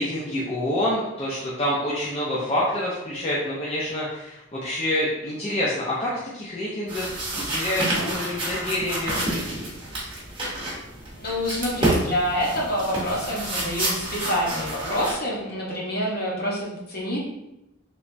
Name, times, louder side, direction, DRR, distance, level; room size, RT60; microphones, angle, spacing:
voice 1, 0.0-9.7, left 1 dB, 30° left, -6 dB, 0.5 m, -27 dB
sound 1, 6.9-15.1, right 1 dB, 25° right, 0.8 m, -29 dB
voice 2, 11.2-17.2, equal, 50° left, -4 dB, 0.9 m, -27 dB
3.3 x 3.0 x 2.6 m, 0.92 s
head